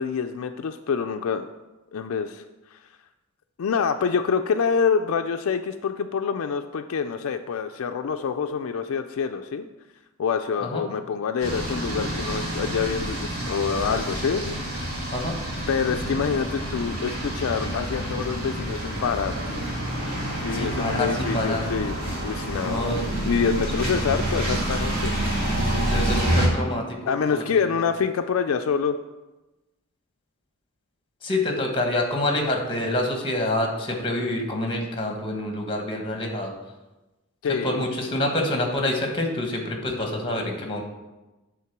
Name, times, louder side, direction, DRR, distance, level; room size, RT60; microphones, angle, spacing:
voice 1, 0.0-1.5 1.9-2.4 2.7-2.8 3.6-9.7 10.2-14.8 15.7-19.3 20.4-21.9 22.2-22.9 23.2-25.1 27.1-29.0 37.4-37.9, left 6 dB, 70° left, 7 dB, 0.4 m, -26 dB
sound 1, 11.4-26.5, right 1 dB, 45° right, 2.5 m, -28 dB
voice 2, 20.5-21.7 22.6-23.0 25.9-27.4 31.2-36.5 37.6-40.8, left 1 dB, 25° left, 2 dB, 1.3 m, -27 dB
8.6 x 3.8 x 5.9 m, 1.1 s
head